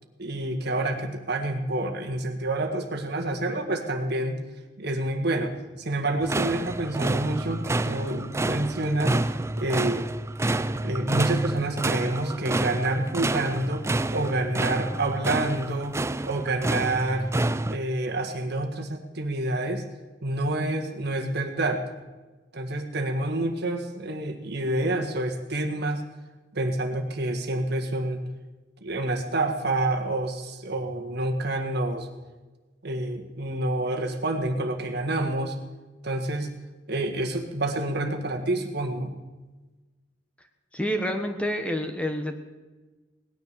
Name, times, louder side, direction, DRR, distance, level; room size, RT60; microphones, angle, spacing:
voice 1, 0.2-4.4 4.8-9.2 9.6-10.1 10.8-13.8 14.1-17.3 17.7-19.8 20.2-21.8 22.5-26.0 26.5-28.2 28.8-32.1 32.8-35.6 36.0-36.5 36.9-39.1, right 2 dB, 60° right, 3 dB, 1.7 m, -28 dB
sound 1, 6.2-17.8, right 2 dB, 15° right, 0.4 m, -28 dB
voice 2, 40.7-42.4, equal, 5° left, 6 dB, 1.2 m, -28 dB
18.5 x 10.5 x 6.8 m, 1.2 s
head